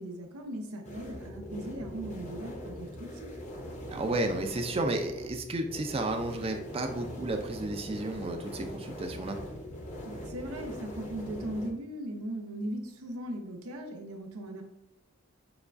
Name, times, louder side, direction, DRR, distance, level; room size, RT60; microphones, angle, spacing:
voice 1, 0.0-3.3 10.1-14.6, right 1 dB, 90° right, 4 dB, 0.7 m, -38 dB
sound 1, 0.8-11.7, equal, 30° left, 0.6 m, -42 dB
voice 2, 3.9-9.4, right 2 dB, 25° right, 5 dB, 0.4 m, -32 dB
6.8 x 2.3 x 2.5 m, 0.86 s
head